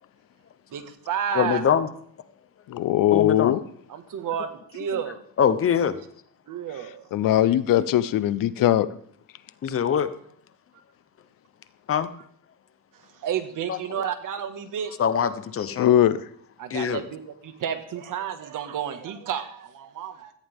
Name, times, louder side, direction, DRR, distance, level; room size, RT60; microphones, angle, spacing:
voice 1, 0.7-1.6 3.9-5.2 6.5-7.1 13.2-15.0 16.6-20.3, right 9 dB, 60° right, 8 dB, 1.9 m, -31 dB
voice 2, 1.3-1.9 3.1-3.5 5.4-6.0 9.6-10.1 11.9-12.1 13.7-13.8 15.0-15.9 16.7-17.0, left 8 dB, 40° left, 13 dB, 0.9 m, -23 dB
voice 3, 2.7-3.6 7.1-8.9 15.8-16.2, left 12 dB, 65° left, 16 dB, 0.8 m, -20 dB
16.5 x 14.5 x 3.7 m, 0.62 s
cardioid pair, 150°, 35 cm